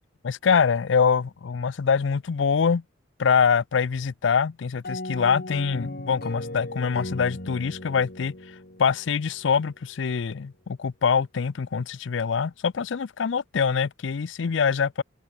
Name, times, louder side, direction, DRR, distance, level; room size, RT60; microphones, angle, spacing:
voice 1, 0.2-2.8 3.2-15.0, left 6 dB, 70° left, 0.5 m, -24 dB
sound 1, 4.8-9.5, left 1 dB, 50° left, 4.0 m, -37 dB
open air
head